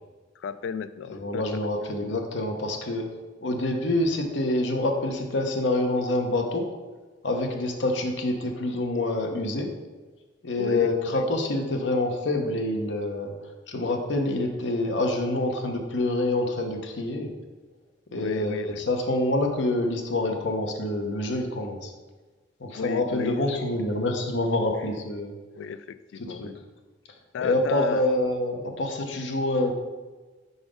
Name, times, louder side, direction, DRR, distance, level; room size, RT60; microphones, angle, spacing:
voice 1, 0.4-1.7 10.6-11.2 18.2-18.8 22.8-23.4 25.6-26.6 27.3-28.0, left 6 dB, 90° left, 13 dB, 0.3 m, -34 dB
voice 2, 1.1-3.1 3.4-6.7 7.2-9.7 10.4-13.3 13.7-17.3 18.1-21.9 22.6-25.4 26.3-26.5 27.4-29.8, left 2 dB, 70° left, 3 dB, 0.8 m, -26 dB
4.9 x 4.0 x 5.0 m, 1.3 s
head